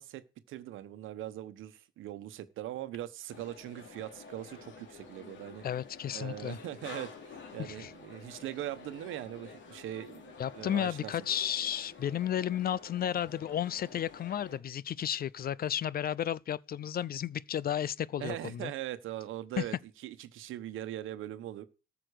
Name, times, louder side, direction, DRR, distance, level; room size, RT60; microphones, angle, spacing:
voice 1, 0.0-5.6 6.1-11.1 18.2-19.7 20.0-21.6, right 13 dB, 85° right, 1.1 m, -41 dB
sound 1, 3.3-14.6, left 5 dB, 70° left, 3.1 m, -50 dB
voice 2, 5.6-6.6 7.6-7.9 10.4-18.7 19.6-19.7, left 10 dB, 50° left, 0.5 m, -33 dB
13.5 x 6.0 x 6.4 m
cardioid pair, 90°, 20 cm